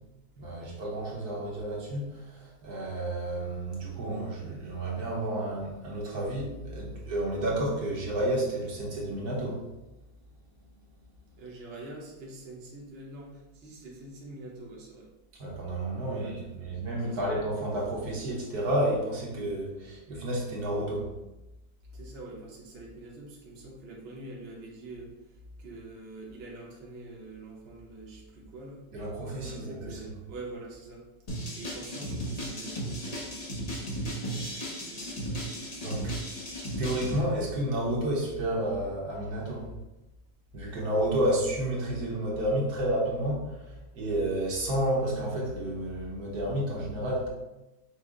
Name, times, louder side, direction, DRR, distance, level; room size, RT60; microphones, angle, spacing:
voice 1, 0.4-9.6 15.3-21.1 28.9-30.1 33.8-33.9 35.8-36.2 36.8-39.7 40.5-47.3, right 1 dB, 65° right, -3 dB, 1.5 m, -31 dB
voice 2, 11.4-15.1 16.0-16.8 17.1-17.3 21.9-28.8 29.4-31.0 31.5-33.4 33.7-35.6 36.4-36.5, right 2 dB, 45° right, -3 dB, 0.9 m, -45 dB
sound 1, 31.3-37.2, right 1 dB, 40° left, 0.5 m, -35 dB
6.0 x 2.1 x 3.7 m, 1.0 s
omnidirectional pair, 1.8 m